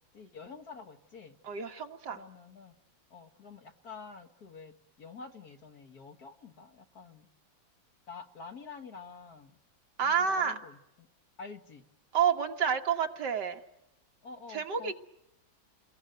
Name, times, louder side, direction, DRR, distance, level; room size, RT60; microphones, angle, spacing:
voice 1, 0.1-1.4 2.1-2.8 3.1-7.3 8.1-9.6 10.0-11.1 11.4-11.8 14.2-14.9, left 5 dB, 55° left, 7 dB, 2.0 m, -48 dB
voice 2, 1.4-2.2 10.0-10.6 12.1-13.6 14.5-14.9, right 7 dB, 65° right, 6 dB, 2.0 m, -29 dB
29.5 x 21.5 x 9.3 m, 0.90 s
omnidirectional pair, 2.1 m